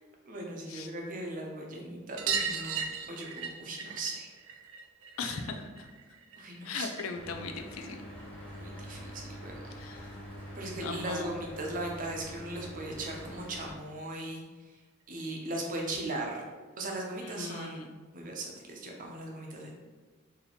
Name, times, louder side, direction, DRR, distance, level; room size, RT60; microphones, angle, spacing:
voice 1, 0.3-4.3 5.2-5.3 6.4-6.9 8.5-9.6 9.9-10.1 10.5-14.4 15.1-16.4 16.8-19.7, right 2 dB, 40° right, 0 dB, 0.6 m, -38 dB
sound 1, 2.2-7.3 7.6-8.7 10.1-10.2 10.4-10.5 10.8-10.9 12.2-12.3 12.6-12.7 13.0-13.1 14.3-14.4 15.2-15.3, right 6 dB, 90° right, 0.3 m, -38 dB
voice 2, 5.2-5.9 6.6-8.1 9.8-10.1 10.8-11.3 17.2-18.0, left 4 dB, 85° left, 5 dB, 0.4 m, -38 dB
Mechanical fan, 7.1-13.7, equal, 5° left, 0.9 m, -45 dB
2.9 x 2.7 x 4.0 m, 1.4 s
head